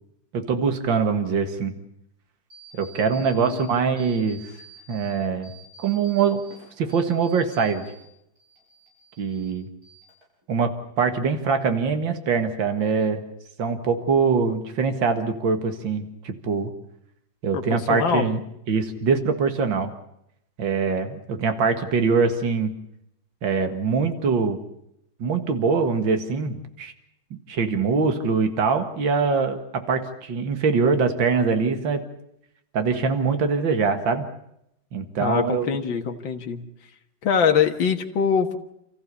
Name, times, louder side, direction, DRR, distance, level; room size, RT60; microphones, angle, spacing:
voice 1, 0.3-1.7 2.8-4.4 4.9-5.5 5.8-6.4 6.8-7.9 9.2-9.7 10.5-13.2 13.6-16.7 17.4-18.4 18.7-19.9 20.6-22.7 23.4-24.6 25.2-26.9 27.5-32.0 32.7-34.3 34.9-35.7, right 5 dB, 70° right, 7 dB, 2.5 m, -23 dB
sound 1, 2.5-3.6 4.0-5.1 5.4-8.0 8.3-9.5 9.8-10.4, right 3 dB, 45° right, 7.5 m, -48 dB
voice 2, 3.2-3.8 17.5-18.3 35.2-36.6 37.2-38.6, left 7 dB, 65° left, 4 dB, 2.3 m, -23 dB
29.5 x 14.5 x 8.4 m, 0.79 s
omnidirectional pair, 2.2 m